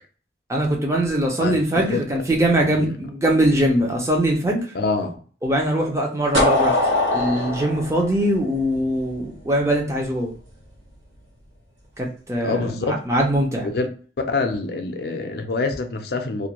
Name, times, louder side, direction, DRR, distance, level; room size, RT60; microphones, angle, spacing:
voice 1, 0.5-4.7 5.4-6.8 7.1-10.3 12.0-13.7, right 1 dB, 15° right, 0.5 m, -22 dB
voice 2, 2.6-3.0 4.7-5.2 12.4-13.0 13.6-13.9 14.2-16.5, left 3 dB, 55° left, 0.4 m, -25 dB
sound 1, 6.3-9.2, left 2 dB, 90° right, 0.9 m, -22 dB
2.5 x 2.2 x 2.9 m
head